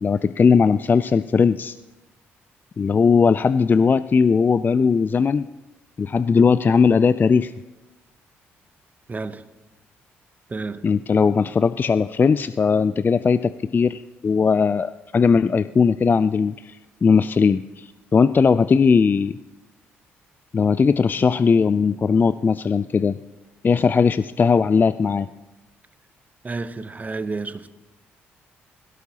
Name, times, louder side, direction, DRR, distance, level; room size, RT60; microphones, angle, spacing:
voice 1, 0.0-1.8 2.8-5.5 6.0-7.5 10.8-19.4 20.5-23.2 23.6-25.3, left 5 dB, 35° left, 0.3 m, -18 dB
voice 2, 9.1-9.4 10.5-10.8 26.4-27.7, right 3 dB, 30° right, 0.8 m, -30 dB
17.5 x 16.0 x 2.9 m
hypercardioid pair, 55°, 6 cm